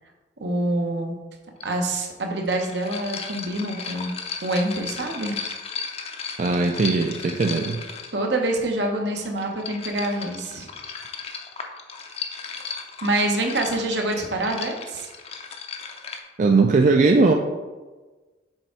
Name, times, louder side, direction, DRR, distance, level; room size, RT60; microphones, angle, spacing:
voice 1, 0.4-1.2 1.6-4.1 4.4-5.4 8.1-10.7 13.0-15.1, right 1 dB, 75° right, 2 dB, 1.0 m, -26 dB
sound 1, 1.6-1.7 2.4-8.3 9.2-16.2, left 5 dB, 35° left, 0.6 m, -36 dB
voice 2, 6.4-7.8 16.4-17.3, right 3 dB, 45° right, 3 dB, 0.4 m, -19 dB
6.9 x 3.5 x 4.4 m, 1.3 s
head